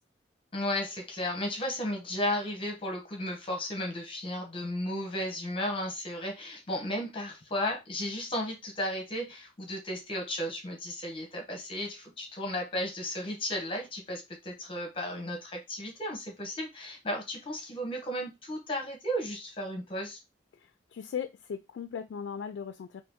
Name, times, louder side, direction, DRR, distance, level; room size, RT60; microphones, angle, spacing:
voice 1, 0.5-20.2, left 1 dB, 30° left, 0.8 m, -34 dB
voice 2, 20.9-23.0, left 7 dB, 80° left, 0.3 m, -37 dB
2.8 x 2.6 x 3.5 m
head